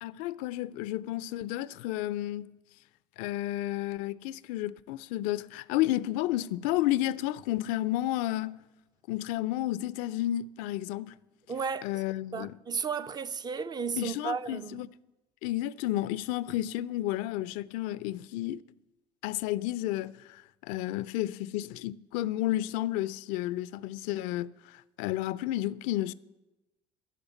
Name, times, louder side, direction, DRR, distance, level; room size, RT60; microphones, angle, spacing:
voice 1, 0.0-2.5 3.2-8.6 9.1-11.1 11.8-12.6 14.0-14.9 15.4-18.6 19.2-26.1, left 15 dB, 60° left, 0.4 m, -31 dB
voice 2, 11.5-12.0 12.3-14.8, right 6 dB, 25° right, 0.4 m, -34 dB
13.0 x 4.9 x 8.2 m
figure-of-eight pair, 60°, 16 cm